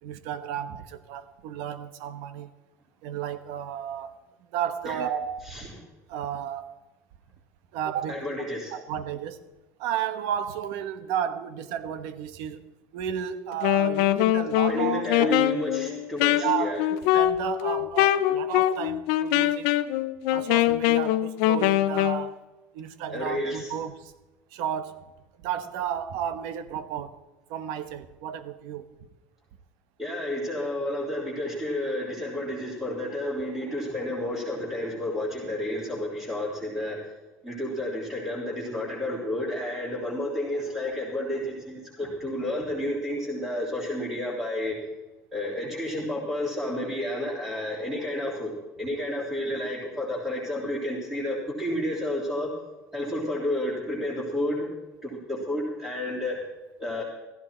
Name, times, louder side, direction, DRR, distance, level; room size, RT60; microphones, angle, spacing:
voice 1, 0.0-2.5 3.0-4.2 4.5-5.7 6.1-6.7 7.7-8.4 8.7-9.4 9.8-12.6 12.9-15.3 16.4-19.8 20.3-22.3 22.7-24.1 24.5-25.0 25.4-27.2 27.5-28.9, right 9 dB, 80° right, 1.2 m, -33 dB
voice 2, 8.1-8.7 14.7-16.8 23.1-23.7 30.0-37.0 37.4-44.8 45.3-48.5 48.8-52.5 52.9-54.7 55.0-56.4 56.8-57.0, left 1 dB, 5° right, 3.6 m, -31 dB
Wind instrument woodwind instrument, 13.5-22.3, left 14 dB, 85° left, 0.7 m, -23 dB
15.5 x 15.0 x 4.5 m
cardioid pair, 170°, 6 cm